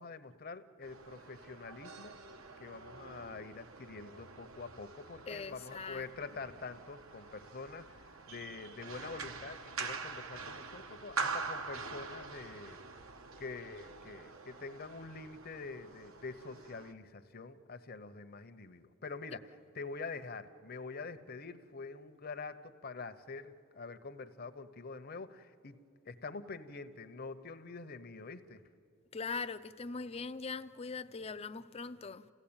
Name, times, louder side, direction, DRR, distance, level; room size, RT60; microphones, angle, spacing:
voice 1, 0.0-2.2 2.6-12.8 13.4-19.4 19.7-28.6, left 4 dB, 45° left, 0.8 m, -46 dB
sound 1, 0.8-16.9, right 4 dB, 80° right, 1.1 m, -45 dB
voice 2, 5.3-6.1 29.1-32.3, left 4 dB, 30° left, 0.5 m, -41 dB
28.0 x 16.0 x 8.8 m
head